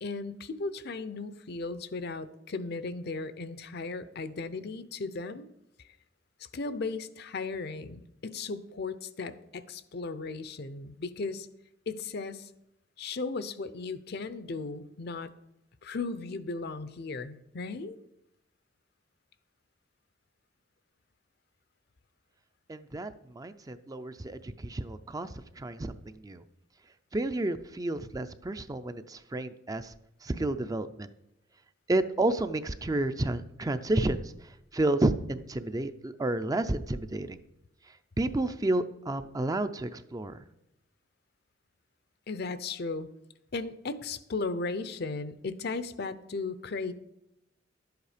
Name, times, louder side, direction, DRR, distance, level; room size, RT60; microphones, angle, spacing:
voice 1, 0.0-5.5 6.4-11.5 11.9-12.5 13.0-15.3 15.8-18.0 42.3-43.1 43.5-46.9, left 3 dB, 60° left, 13 dB, 0.6 m, -36 dB
voice 2, 22.7-25.9 26.2-26.4 27.1-29.9 30.2-31.1 31.9-34.2 34.7-37.4 38.2-40.4, right 2 dB, 20° right, 11 dB, 0.4 m, -30 dB
11.5 x 8.1 x 5.0 m, 0.84 s
head